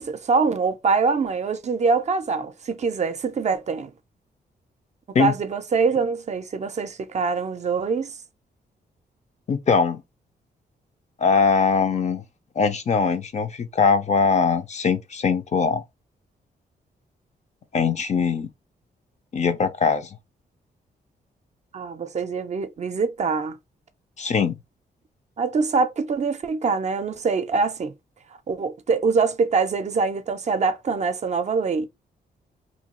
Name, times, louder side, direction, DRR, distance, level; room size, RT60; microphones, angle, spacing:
voice 1, 0.0-3.9 5.2-8.2 21.7-23.6 25.4-27.9 28.5-31.9, right 4 dB, 40° right, 0.4 m, -24 dB
voice 2, 9.5-10.0 11.2-12.2 12.6-15.8 17.7-18.5 19.3-20.1 24.2-24.6, left 5 dB, 40° left, 0.4 m, -21 dB
2.7 x 2.2 x 2.9 m
cardioid pair, 90°, 17 cm